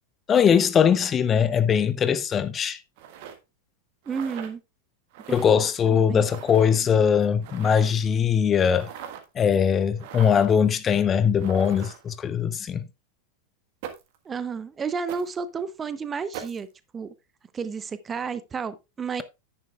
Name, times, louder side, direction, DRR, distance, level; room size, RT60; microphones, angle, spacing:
voice 1, 0.3-2.8 5.3-8.9 9.4-12.9, left 7 dB, 25° left, 0.6 m, -21 dB
sound 1, 3.0-3.3 4.0-4.5 5.1-5.5 6.2-6.7 7.4-8.0 8.7-9.3 10.0-10.6 11.4-12.1 13.8-14.2 15.1-15.3 16.3-16.6, right 9 dB, 50° right, 1.4 m, -40 dB
voice 2, 4.1-4.6 5.3-5.4 5.9-6.3 14.2-16.7 16.9-17.1 17.5-19.2, right 5 dB, 20° right, 0.7 m, -31 dB
10.0 x 9.4 x 2.3 m
figure-of-eight pair, 90°, 0 cm